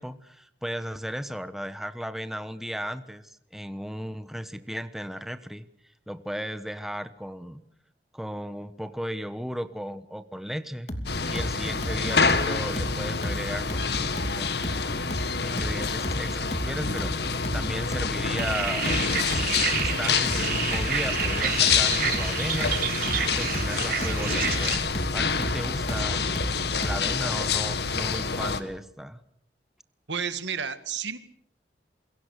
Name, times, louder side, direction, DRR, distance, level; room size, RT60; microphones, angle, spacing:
voice 1, 0.0-5.7 6.1-7.6 8.1-10.9 11.3-14.8 15.4-24.9 25.1-26.3 26.8-29.2, equal, ahead, 11 dB, 1.1 m, -36 dB
sound 1, 10.9-27.1, equal, 40° left, 2.7 m, -34 dB
sound 2, 11.1-28.6, left 5 dB, 65° left, 1.9 m, -27 dB
sound 3, 18.4-24.8, right 7 dB, 55° right, 4.7 m, -29 dB
voice 2, 30.1-31.2, right 6 dB, 85° right, 11 dB, 2.0 m, -31 dB
28.0 x 23.0 x 6.7 m, 0.69 s
head